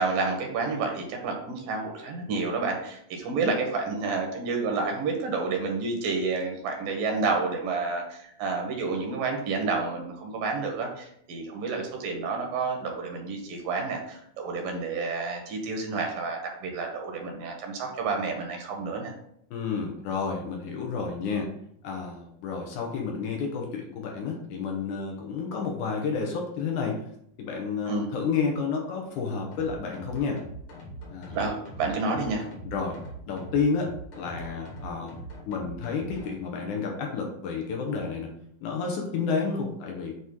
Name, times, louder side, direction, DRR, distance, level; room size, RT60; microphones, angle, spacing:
voice 1, 0.0-19.1 27.9-28.1 31.3-32.4, right 4 dB, 75° right, 2 dB, 2.7 m, -30 dB
voice 2, 19.5-21.5 21.8-27.0 27.4-30.4 31.1-31.4 32.6-33.0 33.3-35.1 35.5-38.3 38.6-40.2, left 5 dB, 70° left, 0 dB, 2.1 m, -30 dB
sound 1, 29.5-36.3, right 1 dB, 50° left, 2.6 m, -42 dB
8.3 x 3.1 x 3.7 m, 0.71 s
omnidirectional pair, 4.1 m